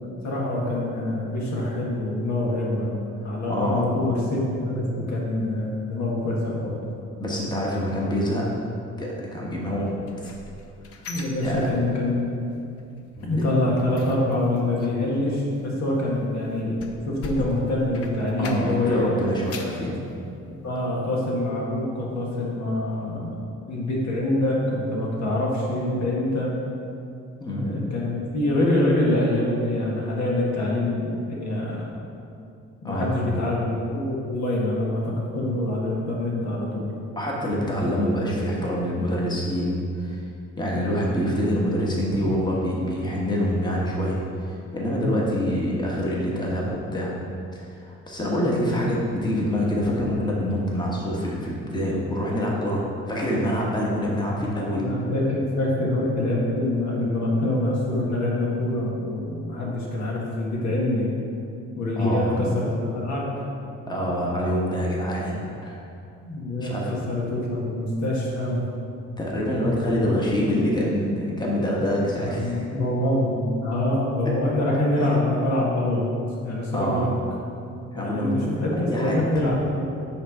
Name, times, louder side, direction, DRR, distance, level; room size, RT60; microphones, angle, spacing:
voice 1, 0.0-6.9 11.1-12.3 13.2-16.8 17.0-19.1 19.6-19.7 20.6-23.4 23.7-26.5 27.6-31.9 32.8-36.9 54.3-54.5 54.7-61.1 61.7-63.3 66.2-68.6 69.8-70.0 72.3-76.0 76.4-77.1 77.9-79.8, left 1 dB, 65° left, -4 dB, 1.6 m, -25 dB
voice 2, 3.5-3.8 7.2-8.5 9.0-9.9 11.4-11.6 13.2-13.3 18.4-20.0 27.4-27.7 32.8-33.2 37.2-40.2 40.6-44.2 44.4-47.1 47.5-54.9 62.0-62.3 63.9-65.8 66.6-66.9 69.2-72.7 75.0-75.1 76.7-77.1 77.9-79.2, equal, 15° left, -4 dB, 1.3 m, -26 dB
sound 1, 9.9-12.2 12.5-12.8 13.1-18.9 19.3-19.9 20.4-20.5 20.9-21.0, left 2 dB, 50° left, 0.7 m, -41 dB
9.0 x 3.4 x 4.8 m, 2.5 s
cardioid pair, 90°, 30 cm